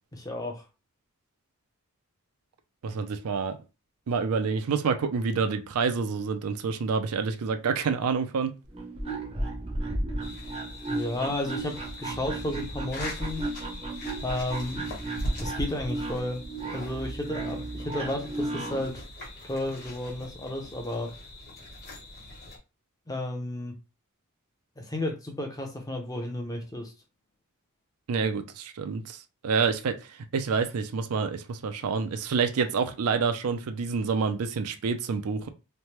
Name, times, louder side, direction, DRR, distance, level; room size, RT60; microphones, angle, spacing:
voice 1, 0.1-0.6 10.9-13.4 14.2-14.8 15.4-16.4 16.7-19.0 19.4-21.1 23.1-23.7 24.8-26.9, left 1 dB, 15° left, 0.6 m, -32 dB
voice 2, 2.8-3.6 4.1-8.5 28.1-35.5, right 5 dB, 80° right, 0.4 m, -28 dB
sound 1, 8.6-18.9, right 2 dB, 25° right, 0.6 m, -34 dB
sound 2, 10.2-22.6, equal, 40° left, 1.1 m, -40 dB
3.2 x 2.1 x 2.9 m
head